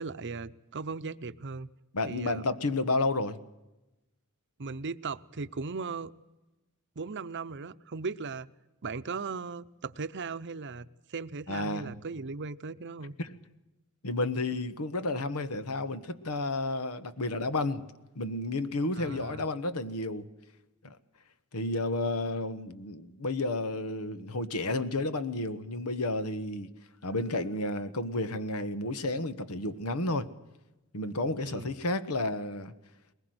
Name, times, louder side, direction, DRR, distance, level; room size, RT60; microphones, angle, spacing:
voice 1, 0.0-1.7 2.0-2.5 4.6-6.1 7.0-8.5 8.8-13.1 18.9-19.5 31.4-31.7, right 4 dB, 55° right, 0.7 m, -38 dB
voice 2, 1.9-3.4 11.5-11.9 13.2-13.3 14.0-17.8 18.1-20.3 21.5-26.7 27.0-30.3 30.9-32.7, left 2 dB, 85° left, 1.3 m, -31 dB
21.5 x 20.0 x 7.9 m
head